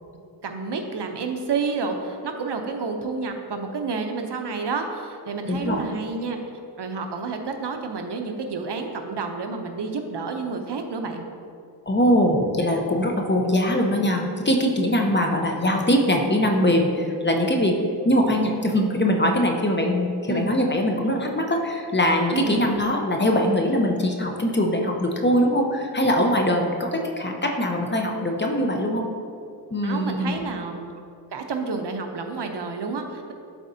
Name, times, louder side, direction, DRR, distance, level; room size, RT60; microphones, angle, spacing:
voice 1, 0.4-6.4 6.8-11.2 16.9-17.0 20.3-20.5 22.3-22.6 29.8-30.9 31.3-33.3, right 4 dB, 70° right, 5 dB, 0.7 m, -30 dB
voice 2, 5.5-5.8 11.9-17.8 18.0-29.0 29.7-30.4, equal, 25° left, 1 dB, 0.8 m, -22 dB
11.5 x 4.2 x 2.7 m, 2.4 s
wide cardioid pair, 70°, 44 cm